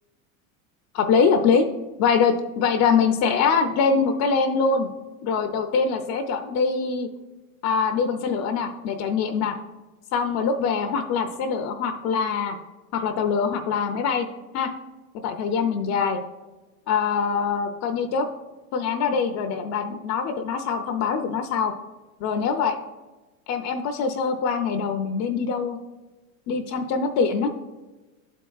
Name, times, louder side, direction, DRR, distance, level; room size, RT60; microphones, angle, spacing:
voice 1, 0.9-1.7 2.0-4.9 5.2-7.1 7.6-9.6 10.1-12.6 12.9-14.3 14.5-14.7 15.2-16.2 16.9-18.3 18.7-21.7 22.2-22.8 23.5-25.8 26.5-27.5, left 5 dB, 40° left, 6 dB, 0.6 m, -23 dB
11.5 x 4.6 x 2.3 m, 1.2 s
supercardioid pair, 115°, 43 cm